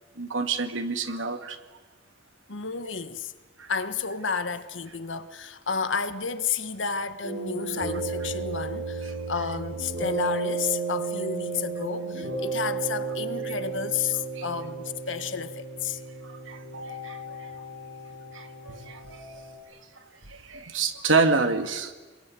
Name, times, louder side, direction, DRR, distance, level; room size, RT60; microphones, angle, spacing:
voice 1, 0.2-1.6 3.6-3.7 14.4-14.5 16.5-16.6 17.0-17.2 18.3-19.0 20.3-21.9, right 4 dB, 90° right, 2.3 m, -27 dB
voice 2, 2.5-3.3 3.7-16.0, left 6 dB, 80° left, 1.4 m, -31 dB
sound 1, 7.2-19.6, right 4 dB, 65° right, 7.7 m, -33 dB
27.5 x 22.0 x 9.5 m
head